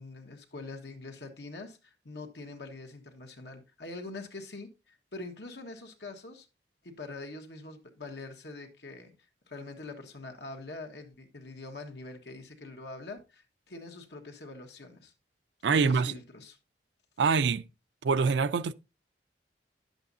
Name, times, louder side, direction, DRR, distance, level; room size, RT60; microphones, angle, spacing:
voice 1, 0.0-6.5 6.8-9.1 9.5-15.1 15.7-16.6, left 3 dB, 70° left, 1.5 m, -44 dB
voice 2, 15.6-16.1 17.2-17.7 18.0-18.7, right 5 dB, 80° right, 0.4 m, -25 dB
10.5 x 7.9 x 2.7 m
head